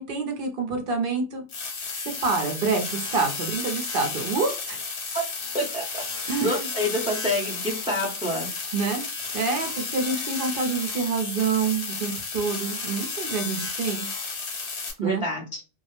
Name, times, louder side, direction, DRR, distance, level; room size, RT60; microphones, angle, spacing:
voice 1, 0.0-1.4 2.2-4.8 6.3-6.7 8.7-9.0 9.3-14.1 15.0-15.2, right 4 dB, 55° right, 4 dB, 0.7 m, -27 dB
sound 1, 1.5-14.9, left 4 dB, 70° left, 1.0 m, -32 dB
voice 2, 5.5-6.0 6.4-8.5 10.1-10.3 15.0-15.6, left 1 dB, 5° right, -1 dB, 0.5 m, -27 dB
2.3 x 2.0 x 3.0 m, 0.32 s
omnidirectional pair, 1.2 m